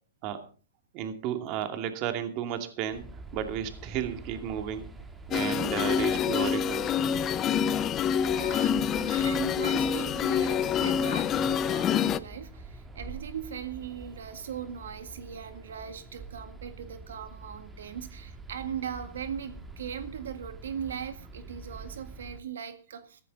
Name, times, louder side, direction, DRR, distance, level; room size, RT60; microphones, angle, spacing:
voice 1, 0.9-3.1 3.3-4.9 5.3-6.9, right 9 dB, 40° right, 7 dB, 2.4 m, -33 dB
sound 1, 2.9-22.4, right 3 dB, 10° right, 2.1 m, -46 dB
sound 2, 5.3-12.2, left 8 dB, 25° left, 0.7 m, -26 dB
voice 2, 8.3-23.2, right 8 dB, 85° right, 9 dB, 1.8 m, -39 dB
15.0 x 15.0 x 4.0 m, 0.37 s
hypercardioid pair, 140°, 0 cm